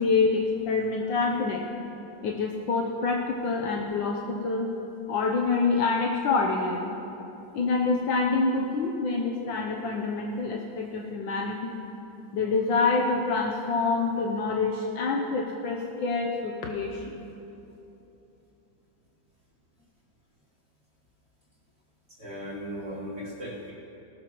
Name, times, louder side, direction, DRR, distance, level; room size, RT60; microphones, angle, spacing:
voice 1, 0.0-1.6 2.2-4.7 5.1-7.0 7.5-11.7 12.3-17.2, left 4 dB, 75° left, 0 dB, 1.5 m, -26 dB
voice 2, 22.1-23.7, equal, 40° right, -9 dB, 3.6 m, -37 dB
19.5 x 13.0 x 3.1 m, 3.0 s
omnidirectional pair, 2.1 m